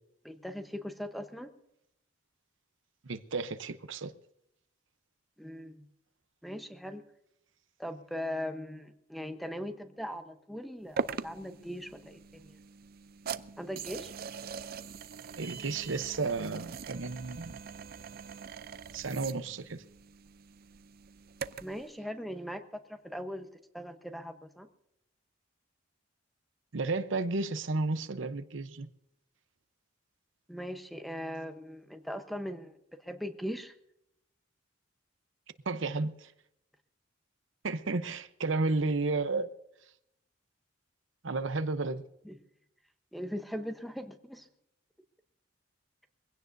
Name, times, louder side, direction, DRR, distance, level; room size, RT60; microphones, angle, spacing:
voice 1, 0.2-1.5 5.4-5.9 6.4-7.0 7.8-12.6 13.6-14.1 21.6-22.6 22.9-23.5 23.7-24.7 30.5-32.7 33.0-33.7 42.2-42.4 43.1-44.5, equal, ahead, 0.9 m, -39 dB
voice 2, 3.0-4.1 15.4-17.6 18.9-19.8 26.7-28.9 35.7-36.3 37.6-39.5 41.2-42.0, right 3 dB, 75° right, 0.8 m, -32 dB
sound 1, 11.0-21.8, right 6 dB, 50° right, 0.5 m, -42 dB
22.5 x 16.5 x 2.6 m
head